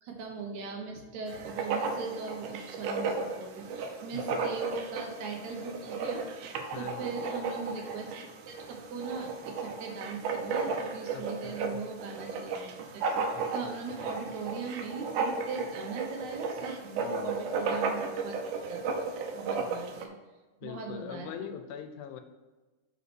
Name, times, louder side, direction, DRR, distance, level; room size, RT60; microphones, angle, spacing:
voice 1, 0.0-6.5 6.8-8.1 8.5-13.0 13.5-18.4 18.7-20.1 20.6-21.5, right 4 dB, 70° right, 2 dB, 2.4 m, -40 dB
Writing, 1.3-20.1, right 4 dB, 90° right, 2.3 m, -34 dB
voice 2, 6.7-7.2 11.1-11.9 13.3-14.1 17.0-17.5 20.6-22.2, left 8 dB, 80° left, 8 dB, 2.1 m, -43 dB
5.7 x 5.2 x 6.1 m, 1.2 s
omnidirectional pair, 3.6 m